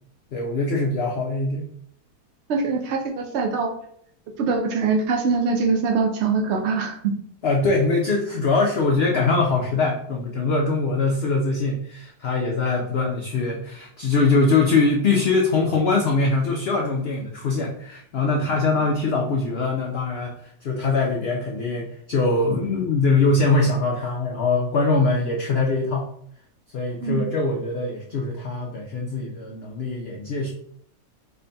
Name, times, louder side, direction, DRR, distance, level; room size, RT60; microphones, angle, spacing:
voice 1, 0.3-1.6 7.4-26.1 26.7-30.5, left 3 dB, 85° left, 0 dB, 0.5 m, -22 dB
voice 2, 2.5-3.7 4.4-7.2 27.0-27.3, right 4 dB, 80° right, 2 dB, 0.6 m, -23 dB
3.4 x 2.2 x 3.9 m, 0.66 s
omnidirectional pair, 1.7 m